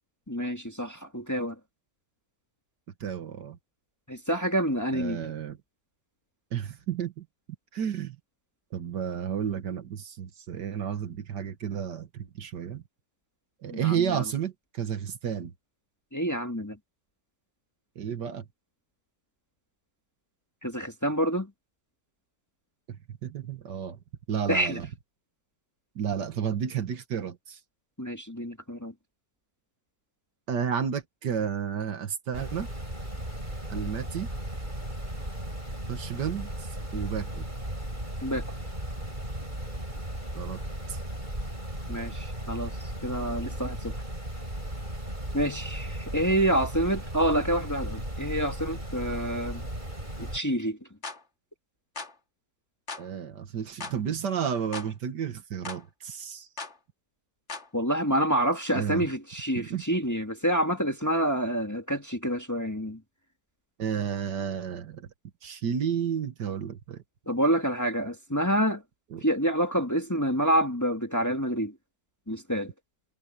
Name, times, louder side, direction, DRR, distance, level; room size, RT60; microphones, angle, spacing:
voice 1, 0.3-1.6 4.1-5.2 13.7-14.2 16.1-16.8 20.6-21.5 24.5-24.8 28.0-28.9 38.2-38.5 41.9-42.7 43.0-44.0 45.3-49.6 50.2-50.8 57.7-63.0 67.3-68.8 69.2-71.8 72.3-72.7, right 1 dB, 10° left, 1.7 m, -27 dB
voice 2, 3.0-3.6 4.9-5.6 6.5-7.3 7.7-8.2 8.7-12.8 13.6-15.5 18.0-18.5 22.9-24.0 24.3-24.9 26.0-27.6 30.5-32.7 33.7-34.3 35.9-37.5 40.3-40.6 40.9-41.0 53.0-56.5 58.8-59.1 59.6-59.8 63.8-65.1 65.4-67.0 69.1-69.2, right 8 dB, 70° right, 1.9 m, -32 dB
sound 1, 32.3-50.4, right 1 dB, 25° right, 8.3 m, -36 dB
sound 2, 51.0-51.2 52.0-52.1 52.9-53.1 53.8-54.0 54.7-54.9 55.6-55.8 56.6-56.8 57.5-57.7, left 4 dB, 40° left, 2.3 m, -38 dB
omnidirectional pair, 2.0 m